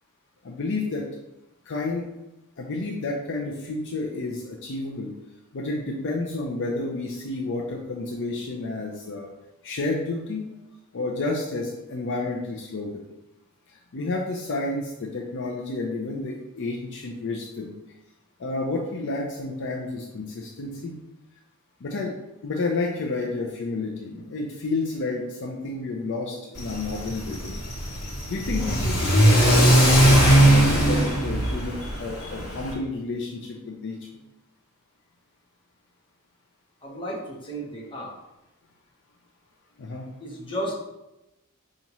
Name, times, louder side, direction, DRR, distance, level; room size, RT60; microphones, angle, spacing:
voice 1, 0.4-1.1 1.7-2.1 2.6-5.1 5.5-9.3 9.6-10.5 10.9-13.0 13.7-17.7 18.4-21.0 21.8-22.1 22.4-27.6 28.3-34.0 39.8-40.1, left 3 dB, 55° left, -1 dB, 0.5 m, -30 dB
Car / Accelerating revving vroom, 26.6-32.7, right 1 dB, 75° left, 1.2 m, -20 dB
voice 2, 36.8-38.1 40.2-40.7, equal, 20° left, -4 dB, 1.0 m, -33 dB
5.3 x 2.5 x 2.9 m, 0.93 s
head